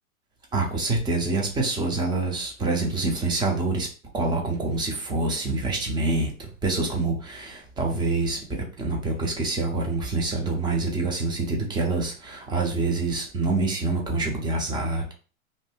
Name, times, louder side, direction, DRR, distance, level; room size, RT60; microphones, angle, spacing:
voice 1, 0.5-3.9 4.1-15.1, right 3 dB, 10° right, 1 dB, 0.5 m, -26 dB
2.6 x 2.1 x 3.4 m, 0.37 s
hypercardioid pair, 115°, 43 cm